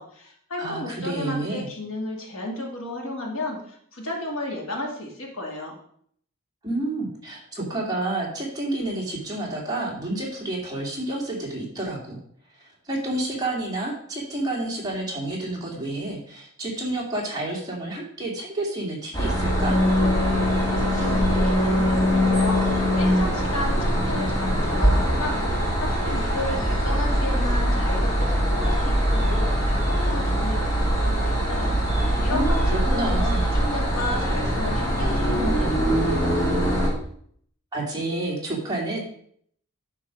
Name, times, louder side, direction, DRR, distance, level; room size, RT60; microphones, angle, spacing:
voice 1, 0.0-5.8 20.8-22.7 23.0-33.2 33.5-36.4, left 1 dB, 65° left, 0 dB, 2.3 m, -33 dB
voice 2, 0.6-1.7 6.6-12.2 12.5-19.8 32.3-33.4 37.7-39.0, right 2 dB, 20° right, -3 dB, 2.4 m, -29 dB
sound 1, 19.1-36.9, equal, 15° left, 2.5 m, -22 dB
9.6 x 4.6 x 6.1 m, 0.64 s
head